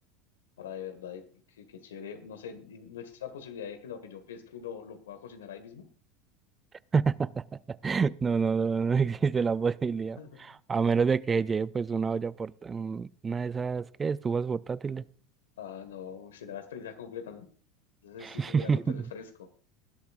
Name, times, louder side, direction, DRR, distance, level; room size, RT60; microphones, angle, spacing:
voice 1, 0.6-5.9 10.2-10.4 15.6-17.5 18.0-19.5, left 8 dB, 80° left, 1.7 m, -43 dB
voice 2, 6.9-15.1 18.2-19.0, right 5 dB, 25° right, 0.4 m, -28 dB
19.0 x 11.5 x 2.6 m
hypercardioid pair, 80°, 0 cm